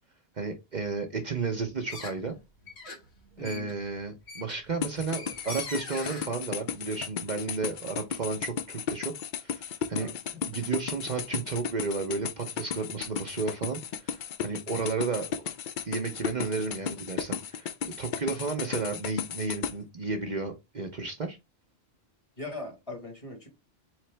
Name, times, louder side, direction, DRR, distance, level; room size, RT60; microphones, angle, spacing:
voice 1, 0.4-2.4 3.4-9.1 9.4-10.1 10.4-15.3 15.8-21.4, right 4 dB, 45° right, 0.8 m, -33 dB
sound 1, 1.8-2.4 2.6-6.3, left 3 dB, 75° left, 1.7 m, -42 dB
voice 2, 3.4-3.7 9.9-10.2 22.4-23.5, left 2 dB, 30° left, 1.3 m, -40 dB
sound 2, 4.8-19.7, left 8 dB, 60° left, 0.6 m, -34 dB
3.9 x 3.3 x 3.3 m
omnidirectional pair, 1.1 m